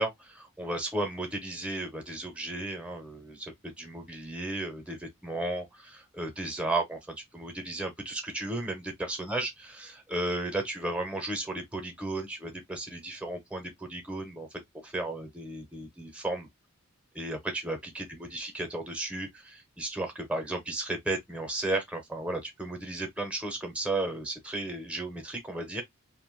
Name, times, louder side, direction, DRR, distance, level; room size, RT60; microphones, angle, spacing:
voice 1, 0.0-14.5 14.8-16.5 17.1-25.8, right 2 dB, 5° right, 0.8 m, -34 dB
2.9 x 2.2 x 3.0 m
head